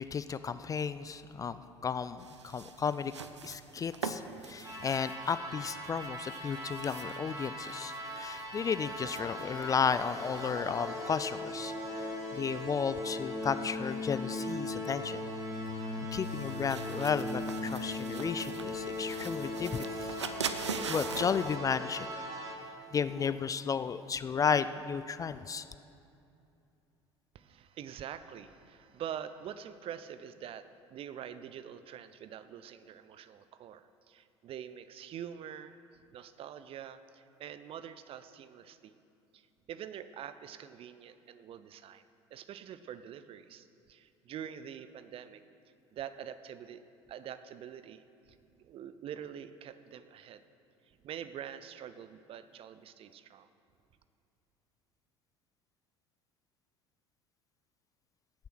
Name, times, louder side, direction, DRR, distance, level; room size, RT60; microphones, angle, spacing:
voice 1, 0.0-3.1 3.4-15.2 16.0-20.3 20.5-22.3 22.9-25.7, left 6 dB, 25° left, 13 dB, 0.4 m, -34 dB
sound 1, 2.2-21.6, right 5 dB, 85° right, 0.5 m, -45 dB
sound 2, 4.6-22.5, left 1 dB, 25° right, 2.6 m, -39 dB
voice 2, 27.3-35.8 36.1-39.0 39.3-45.4 45.9-46.8 47.1-50.4 50.8-53.5, right 9 dB, 40° right, 13 dB, 0.6 m, -45 dB
17.0 x 6.8 x 6.3 m, 2.7 s
figure-of-eight pair, 65°, 14 cm